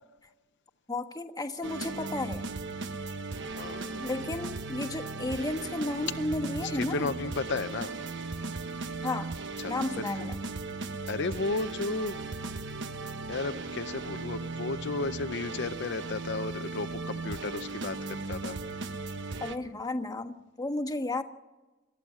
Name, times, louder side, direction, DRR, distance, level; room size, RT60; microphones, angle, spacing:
voice 1, 0.9-2.4 4.0-7.1 9.0-9.3 9.7-10.4 19.4-21.2, left 2 dB, 20° left, 7 dB, 1.3 m, -33 dB
sound 1, 1.6-19.6, right 3 dB, 60° right, 1.1 m, -37 dB
voice 2, 3.5-4.0 6.6-7.9 9.6-9.8 10.2-10.3 11.1-12.2 13.3-18.6, left 3 dB, 60° left, 9 dB, 0.7 m, -34 dB
27.0 x 15.0 x 7.4 m, 1.2 s
head